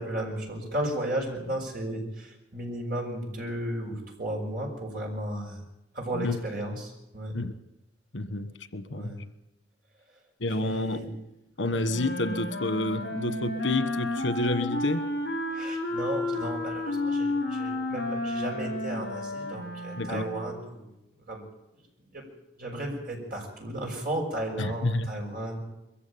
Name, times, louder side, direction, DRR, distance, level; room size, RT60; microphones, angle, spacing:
voice 1, 0.0-5.6 5.9-7.4 8.9-9.2 10.5-11.1 15.5-20.9 21.3-21.5 21.7-21.8 22.1-22.3 22.6-25.6, right 1 dB, 50° right, 0 dB, 6.0 m, -34 dB
voice 2, 8.1-9.1 10.4-11.0 11.6-15.0 20.0-20.2 24.6-25.1, left 2 dB, 85° left, 12 dB, 1.5 m, -29 dB
Wind instrument woodwind instrument, 11.9-20.5, left 2 dB, 70° left, 6.8 m, -32 dB
22.5 x 15.0 x 8.8 m, 0.90 s
head